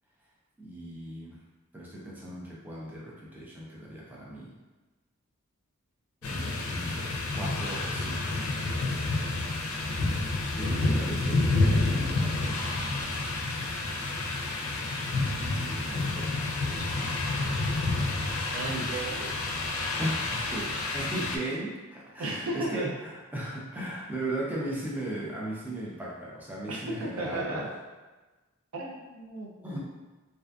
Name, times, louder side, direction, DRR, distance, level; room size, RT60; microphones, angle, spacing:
voice 1, 0.6-1.4 1.7-4.5 6.2-7.1 7.3-8.4 10.5-12.6 15.1-17.1 20.0-27.6 29.6-29.8, right 1 dB, 10° right, -5 dB, 0.4 m, -37 dB
sound 1, 6.2-21.4, left 2 dB, 80° left, 0.4 m, -29 dB
voice 2, 18.5-19.3 22.2-22.9 26.7-27.6 28.7-29.8, right 2 dB, 80° right, -2 dB, 0.5 m, -34 dB
2.5 x 2.4 x 2.2 m, 1.2 s
head